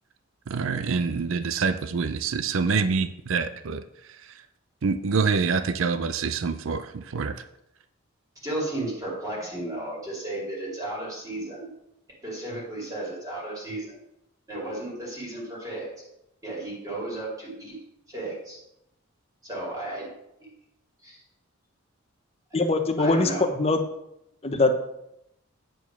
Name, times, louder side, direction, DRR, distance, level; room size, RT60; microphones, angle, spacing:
voice 1, 0.5-3.8 4.8-7.4, right 5 dB, 65° right, 12 dB, 0.5 m, -26 dB
voice 2, 8.4-11.7 12.2-13.9 14.5-16.0 16.4-17.8 18.1-18.6 19.4-20.1 20.4-20.5 21.0-21.2 22.5-22.6 23.0-23.5, right 1 dB, 15° right, -5 dB, 2.5 m, -34 dB
voice 3, 22.5-23.3 23.6-23.8 24.4-24.7, left 2 dB, 30° left, 6 dB, 0.8 m, -22 dB
9.1 x 4.7 x 5.9 m, 0.83 s
head